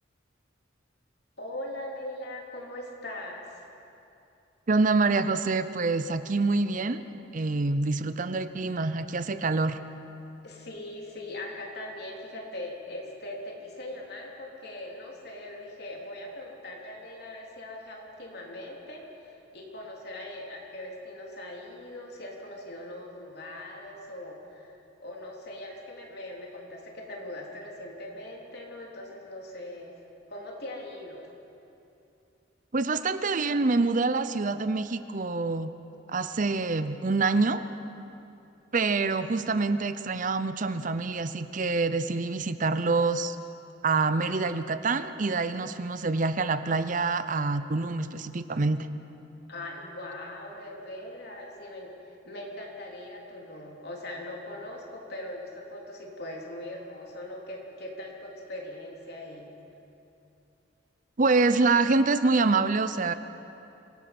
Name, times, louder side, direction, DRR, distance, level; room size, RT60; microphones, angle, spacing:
voice 1, 1.4-3.6 10.4-29.9 30.3-31.3 49.5-59.5, left 1 dB, 60° left, -1 dB, 3.4 m, -41 dB
voice 2, 4.7-7.0 7.3-9.8 32.7-35.7 36.1-37.6 38.7-43.4 43.8-48.9 61.2-63.1, right 3 dB, 45° right, 12 dB, 0.7 m, -26 dB
26.5 x 18.0 x 6.0 m, 2.8 s
head